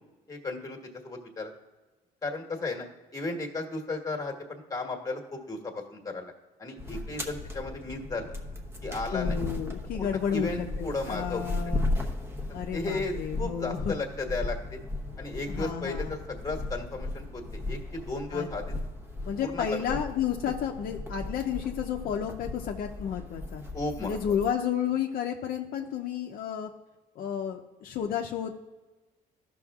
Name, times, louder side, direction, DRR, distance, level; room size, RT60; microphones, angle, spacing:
voice 1, 0.3-0.8 1.0-1.5 2.2-6.3 6.6-8.3 8.8-9.4 10.0-11.6 12.7-14.8 15.2-18.7 19.4-19.8 23.7-24.4, left 3 dB, 20° left, 2 dB, 1.4 m, -35 dB
sound 1, 6.8-24.5, left 2 dB, 15° right, 0.9 m, -36 dB
voice 2, 9.1-11.9 12.5-13.9 15.5-16.1 18.3-18.5 19.3-23.6 24.0-26.7 27.2-28.5, left 8 dB, 60° left, 2 dB, 0.6 m, -31 dB
13.0 x 6.1 x 2.4 m, 1.2 s
cardioid pair, 110°, 17 cm